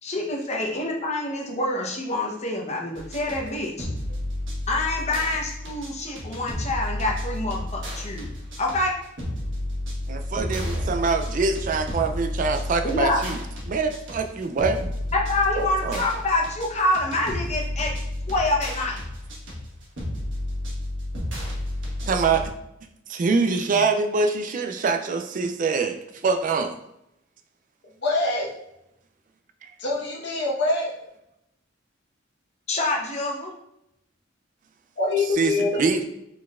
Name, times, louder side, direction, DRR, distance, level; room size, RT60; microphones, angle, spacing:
voice 1, 0.0-3.9 4.7-8.3 8.6-9.0 12.8-13.2 15.1-18.0 18.3-19.0 32.7-33.5, left 2 dB, 35° left, -1 dB, 0.8 m, -26 dB
sound 1, 2.9-22.5, left 1 dB, 75° right, 1.3 m, -32 dB
voice 2, 10.1-13.4 13.7-14.9 15.6-16.0 22.0-22.5 23.1-26.8 29.6-29.7 35.3-36.0, right 4 dB, 40° right, 6 dB, 0.3 m, -24 dB
voice 3, 28.0-28.5 29.8-30.9 35.0-36.0, left 2 dB, 60° left, -3 dB, 1.1 m, -25 dB
4.6 x 3.9 x 2.4 m, 0.82 s
head